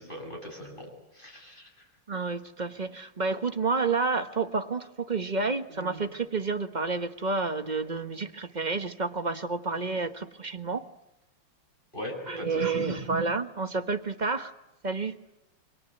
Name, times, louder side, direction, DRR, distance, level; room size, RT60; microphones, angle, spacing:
voice 1, 0.0-1.7 11.9-12.9, equal, 20° left, 2 dB, 7.8 m, -40 dB
voice 2, 2.1-10.9 12.3-14.5 14.8-15.2, right 4 dB, 25° right, 8 dB, 1.0 m, -30 dB
30.0 x 24.5 x 7.9 m, 0.91 s
omnidirectional pair, 2.4 m